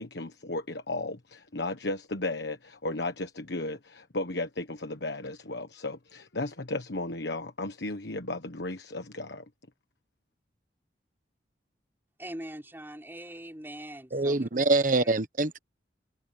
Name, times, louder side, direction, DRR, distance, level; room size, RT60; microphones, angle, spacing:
voice 1, 0.0-9.5, left 2 dB, 75° left, 1.4 m, -35 dB
voice 2, 12.2-14.5 15.0-15.1, right 1 dB, 10° right, 5.7 m, -42 dB
voice 3, 14.1-15.6, right 3 dB, 50° right, 1.3 m, -25 dB
head